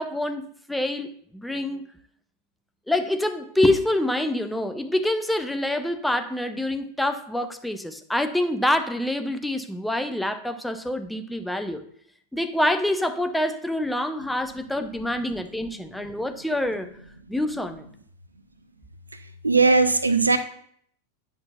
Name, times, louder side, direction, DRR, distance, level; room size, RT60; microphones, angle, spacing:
voice 1, 0.0-1.9 2.9-11.8 12.3-16.9 17.3-17.9, left 1 dB, 5° left, 8 dB, 0.5 m, -26 dB
voice 2, 19.4-20.4, right 3 dB, 80° right, 10 dB, 0.4 m, -18 dB
9.5 x 5.7 x 2.3 m, 0.64 s
figure-of-eight pair, 90°, 0 cm